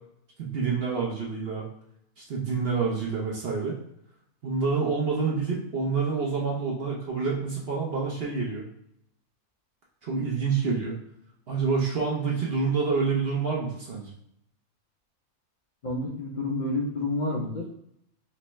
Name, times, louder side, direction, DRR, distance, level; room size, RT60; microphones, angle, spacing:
voice 1, 0.4-1.7 2.2-3.8 4.4-8.6 10.0-10.9 11.5-14.1, right 5 dB, 50° right, -3 dB, 0.8 m, -27 dB
voice 2, 15.8-17.7, left 2 dB, 65° left, -2 dB, 0.4 m, -29 dB
3.2 x 3.2 x 3.0 m, 0.74 s
omnidirectional pair, 1.6 m